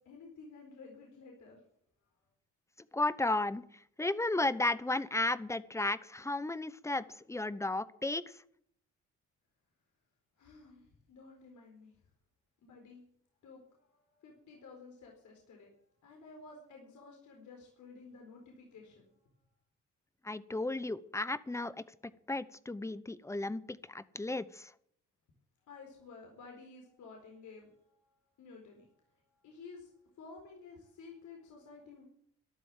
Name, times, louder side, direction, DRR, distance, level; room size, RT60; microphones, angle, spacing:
voice 1, 0.0-1.6 10.4-11.9 12.6-13.0 13.4-15.7 16.0-19.1 25.7-29.9 30.2-32.1, left 4 dB, 75° left, 0 dB, 4.4 m, -53 dB
voice 2, 2.9-3.6 4.0-8.2 20.2-21.8 22.3-24.7, left 2 dB, 10° left, 16 dB, 0.9 m, -34 dB
13.0 x 11.5 x 7.4 m, 0.65 s
cardioid pair, 90°, 30 cm